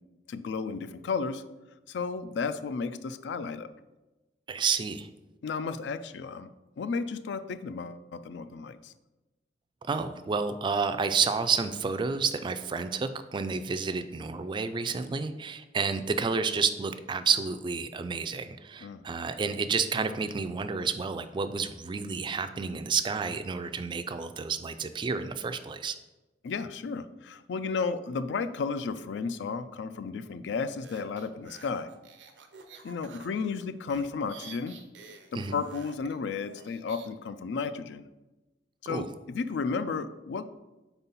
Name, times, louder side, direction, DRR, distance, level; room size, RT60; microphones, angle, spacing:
voice 1, 0.3-1.4 1.9-3.7 5.4-6.5 6.8-8.9 18.8-19.0 26.4-31.9 32.8-34.8 35.3-38.0 38.8-40.4, left 5 dB, 70° left, 12 dB, 0.3 m, -33 dB
voice 2, 4.5-5.1 9.9-26.0 35.3-35.5 38.9-39.1, right 5 dB, 25° right, 10 dB, 0.3 m, -30 dB
sound 1, 30.8-37.1, right 5 dB, 85° right, 0.6 m, -50 dB
4.4 x 4.1 x 5.4 m, 1.1 s
head